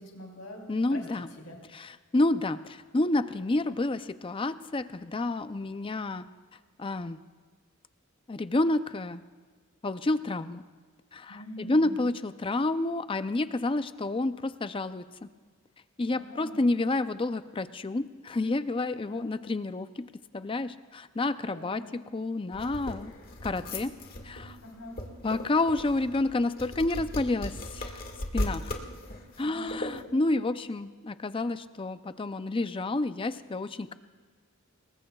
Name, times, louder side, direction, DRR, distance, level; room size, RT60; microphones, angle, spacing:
voice 1, 0.0-1.0 1.4-1.6 11.3-12.0 16.1-16.6 19.0-19.3 21.4-22.0 24.6-25.0 29.4-29.8, left 1 dB, 90° left, 0 dB, 3.6 m, -44 dB
voice 2, 0.7-1.3 1.7-6.2 6.8-7.2 8.3-9.2 9.8-10.6 11.1-15.0 16.0-23.1 23.4-23.9 24.2-24.6 25.2-28.0 28.3-28.7 29.4-33.9, left 2 dB, 25° left, 12 dB, 0.5 m, -29 dB
sound 1, 22.5-30.0, left 1 dB, 45° left, 1.7 m, -37 dB
27.0 x 21.0 x 2.3 m, 1.5 s
head